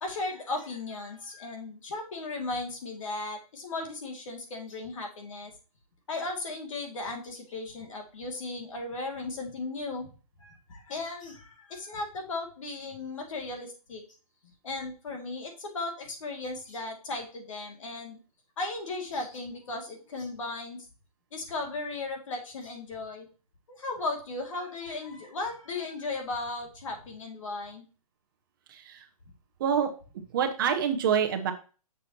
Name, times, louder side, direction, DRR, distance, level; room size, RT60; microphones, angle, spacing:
voice 1, 0.0-5.5 6.1-10.1 10.4-14.0 14.6-18.2 18.6-20.8 21.3-23.3 23.7-27.9, left 3 dB, 55° left, 2 dB, 2.3 m, -36 dB
voice 2, 28.7-29.0 29.6-29.9 30.3-31.5, right 7 dB, 35° right, 6 dB, 0.9 m, -26 dB
6.9 x 5.8 x 2.9 m, 0.35 s
hypercardioid pair, 160°, 20 cm